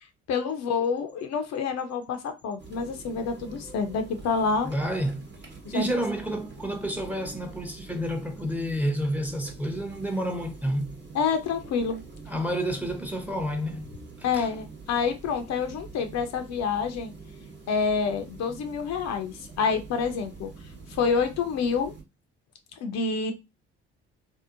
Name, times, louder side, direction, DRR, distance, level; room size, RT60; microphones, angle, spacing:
voice 1, 0.3-4.7 5.7-6.0 11.1-12.0 14.2-17.1 17.7-20.5 20.9-21.9 22.8-23.3, left 5 dB, 65° left, 0.6 m, -27 dB
sound 1, 2.6-22.0, right 4 dB, 35° right, 1.1 m, -45 dB
voice 2, 4.6-5.3 5.7-10.9 12.3-13.8 14.2-14.5, equal, 5° right, 0.8 m, -29 dB
2.7 x 2.0 x 2.5 m
hypercardioid pair, 55°, 30 cm